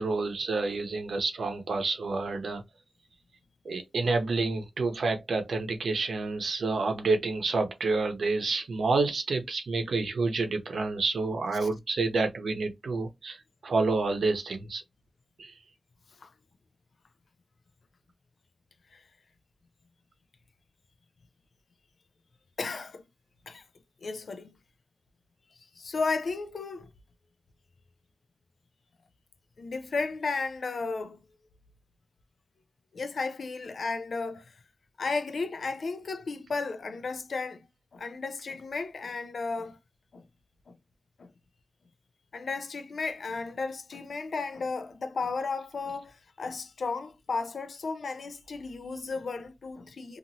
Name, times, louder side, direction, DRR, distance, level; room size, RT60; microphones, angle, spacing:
voice 1, 0.0-2.6 3.6-13.4 13.6-14.8 15.4-15.5, right 3 dB, 85° right, 0.7 m, -29 dB
voice 2, 22.6-23.0 23.5-23.6 24.0-24.5 25.8-26.9 29.6-31.2 32.9-34.5 35.0-37.7 37.9-39.8 40.1-40.2 40.7-40.8 41.2-41.3 42.3-50.2, left 4 dB, 80° left, 0.4 m, -34 dB
2.6 x 2.4 x 2.8 m
wide cardioid pair, 110°, 0 cm